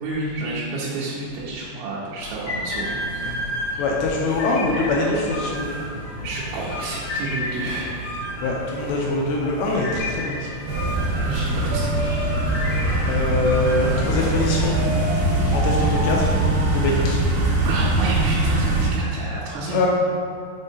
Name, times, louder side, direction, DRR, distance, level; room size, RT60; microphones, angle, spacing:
voice 1, 0.0-3.4 3.7-3.8 6.2-8.0 11.2-12.3 17.6-19.8, right 2 dB, 85° right, -7 dB, 3.2 m, -30 dB
sound 1, 2.2-15.5, left 1 dB, 55° left, 2.3 m, -32 dB
voice 2, 3.8-5.7 8.4-10.5 13.1-14.8 15.4-17.2 19.7-19.9, left 2 dB, 85° left, -2 dB, 2.6 m, -23 dB
sound 2, 10.7-18.9, right 2 dB, 70° right, 2.3 m, -22 dB
7.0 x 5.3 x 2.7 m, 2.4 s
omnidirectional pair, 5.4 m